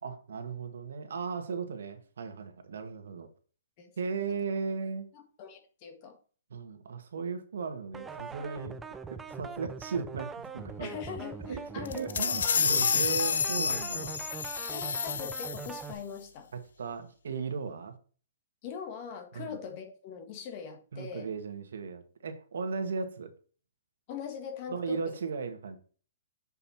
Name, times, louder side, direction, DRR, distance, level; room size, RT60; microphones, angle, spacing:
voice 1, 0.0-3.3 4.0-5.1 6.5-8.8 9.1-10.9 11.4-14.2 16.5-17.9 19.3-19.6 20.9-23.3 24.7-25.8, right 5 dB, 75° right, 7 dB, 1.6 m, -36 dB
voice 2, 5.1-6.2 10.8-12.5 14.7-16.5 18.6-21.3 24.1-25.2, left 7 dB, 30° left, 6 dB, 1.5 m, -42 dB
sound 1, 7.9-15.9, right 5 dB, 5° right, 0.5 m, -42 dB
sound 2, 11.9-15.9, left 6 dB, 85° left, 0.7 m, -29 dB
7.4 x 5.6 x 4.3 m, 0.40 s
hypercardioid pair, 170°, 0 cm